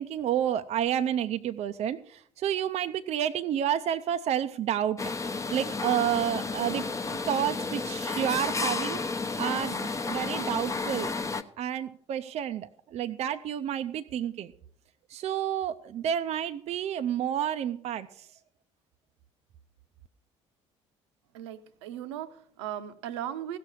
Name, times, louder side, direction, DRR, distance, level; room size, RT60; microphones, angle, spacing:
voice 1, 0.0-5.0 5.5-6.8 7.3-9.0 9.4-11.1 11.6-14.5 15.1-18.1, right 10 dB, 45° right, 0.5 m, -30 dB
sound 1, 5.0-11.4, left 4 dB, 20° left, 0.8 m, -32 dB
voice 2, 21.3-23.6, right 11 dB, 70° right, 0.8 m, -37 dB
16.0 x 6.9 x 6.2 m
figure-of-eight pair, 50°, 15 cm